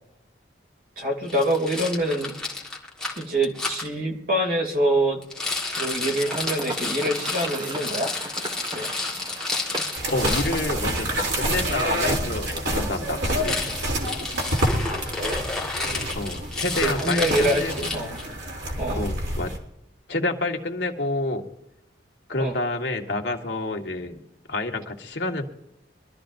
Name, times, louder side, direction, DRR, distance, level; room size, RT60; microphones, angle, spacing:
voice 1, 1.0-2.3 3.2-5.2 5.7-8.1 8.7-8.9 14.8-15.3 16.8-17.7 17.9-18.2 18.8-19.1 22.4-22.5, right 1 dB, 50° right, 3 dB, 2.8 m, -25 dB
Rattle, 1.3-3.9 5.2-10.6 13.3-18.3, left 3 dB, 5° left, 1.6 m, -31 dB
sound 1, 6.2-15.3, right 1 dB, 25° right, 1.6 m, -37 dB
sound 2, 10.0-19.6, right 1 dB, 70° right, 3.2 m, -28 dB
voice 2, 10.1-13.7 14.0-14.3 16.1-17.9 18.9-19.5 20.1-21.4 22.3-24.2 24.5-25.4, left 2 dB, 65° left, 2 dB, 1.7 m, -29 dB
24.0 x 13.0 x 2.6 m, 0.83 s
head